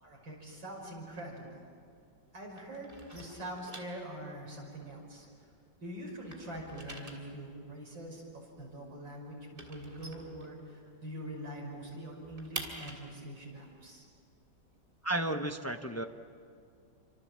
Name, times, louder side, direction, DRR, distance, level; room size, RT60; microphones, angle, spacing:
voice 1, 0.0-1.6 2.3-5.3 5.8-14.1, right 1 dB, 90° right, 0 dB, 6.4 m, -44 dB
sound 1, 0.8-2.3 2.5-5.7 6.0-11.1 11.4-11.5 11.8-15.5, right 2 dB, 30° right, 3.1 m, -48 dB
voice 2, 15.0-16.0, right 1 dB, 20° left, 6 dB, 0.4 m, -33 dB
28.5 x 25.5 x 7.5 m, 2.3 s
omnidirectional pair, 2.0 m